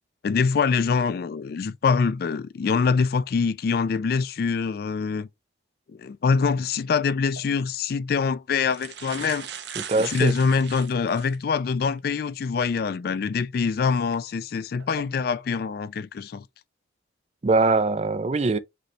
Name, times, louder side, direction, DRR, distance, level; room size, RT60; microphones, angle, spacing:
voice 1, 0.2-5.3 5.9-9.5 9.9-16.4, left 5 dB, 50° left, 0.3 m, -24 dB
sound 1, 7.4-7.5 8.3-8.4 8.6-11.4 12.0-12.1 13.9-14.2 14.8-15.0, right 8 dB, 60° right, 0.7 m, -38 dB
voice 2, 9.9-10.3 17.4-18.6, right 3 dB, 35° right, 0.4 m, -22 dB
5.1 x 3.2 x 3.1 m
head